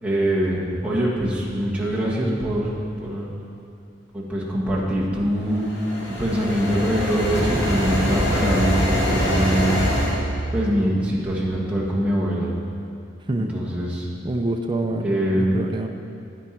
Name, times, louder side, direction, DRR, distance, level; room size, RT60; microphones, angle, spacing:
voice 1, 0.0-2.7 3.0-3.4 4.1-5.7 6.1-9.8 10.5-12.5 13.5-14.1 15.0-15.6, equal, 5° right, -7 dB, 1.8 m, -23 dB
sound 1, 5.5-10.2, equal, 75° left, 2.3 m, -24 dB
sound 2, 7.2-12.6, right 1 dB, 60° left, 1.5 m, -32 dB
voice 2, 13.3-13.6 14.2-15.9, right 2 dB, 25° right, 3 dB, 0.5 m, -26 dB
9.7 x 9.2 x 4.5 m, 2.5 s
head